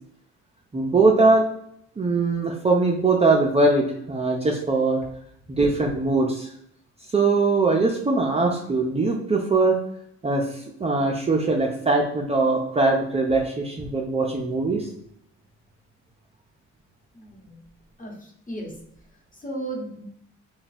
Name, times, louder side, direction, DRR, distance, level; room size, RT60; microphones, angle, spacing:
voice 1, 0.7-1.4 2.0-5.0 5.5-6.5 7.1-9.8 10.2-14.9, right 3 dB, 20° right, -1 dB, 0.5 m, -21 dB
voice 2, 17.1-17.6 18.0-18.8 19.3-20.1, right 1 dB, 25° left, -1 dB, 1.2 m, -35 dB
3.2 x 2.3 x 4.0 m, 0.72 s
cardioid pair, 90°, 30 cm